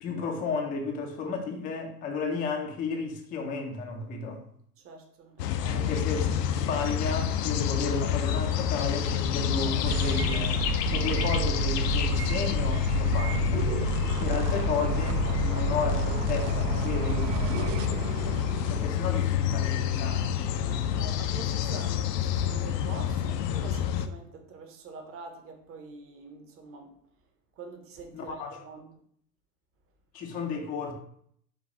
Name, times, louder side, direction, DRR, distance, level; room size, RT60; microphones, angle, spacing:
voice 1, 0.0-4.4 5.7-10.6 10.9-13.7 14.2-18.4 18.7-20.5 28.1-28.6 30.1-30.9, left 4 dB, 20° left, 0.4 m, -33 dB
voice 2, 4.8-5.9 14.0-14.4 18.6-18.7 20.6-26.9 27.6-28.9, right 4 dB, 25° right, 0.8 m, -45 dB
sound 1, 5.4-24.1, left 9 dB, 75° left, 0.5 m, -28 dB
sound 2, 9.9-18.9, right 9 dB, 70° right, 0.6 m, -31 dB
5.0 x 2.3 x 3.8 m
hypercardioid pair, 105°, 49 cm